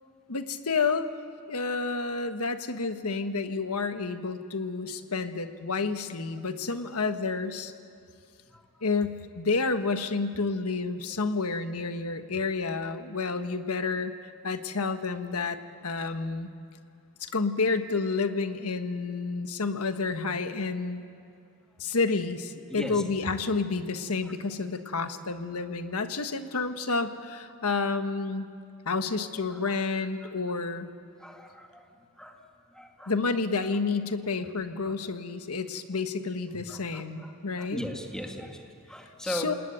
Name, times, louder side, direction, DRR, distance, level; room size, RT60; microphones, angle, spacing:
voice 1, 0.3-1.1 1.5-7.7 8.8-16.5 17.2-21.0 21.8-28.5 28.8-30.9 33.1-37.8 39.2-39.5, left 4 dB, 80° left, 9 dB, 1.4 m, -30 dB
voice 2, 22.7-23.0 29.6-29.8 31.2-31.9 32.2-32.4 32.7-33.1 34.8-34.9 36.5-37.3 37.6-39.5, equal, 5° left, 2 dB, 2.3 m, -38 dB
28.5 x 19.5 x 9.2 m, 2.5 s
head